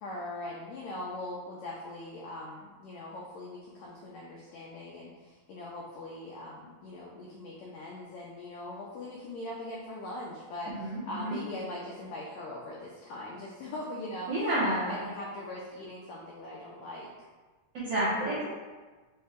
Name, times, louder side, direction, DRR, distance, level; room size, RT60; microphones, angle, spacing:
voice 1, 0.0-14.3 14.6-17.1, left 1 dB, 85° left, -4 dB, 1.6 m, -41 dB
voice 2, 10.8-11.4 14.3-15.0 17.7-18.5, right 1 dB, 80° right, -9 dB, 1.3 m, -30 dB
5.5 x 2.1 x 3.5 m, 1.3 s
omnidirectional pair, 3.8 m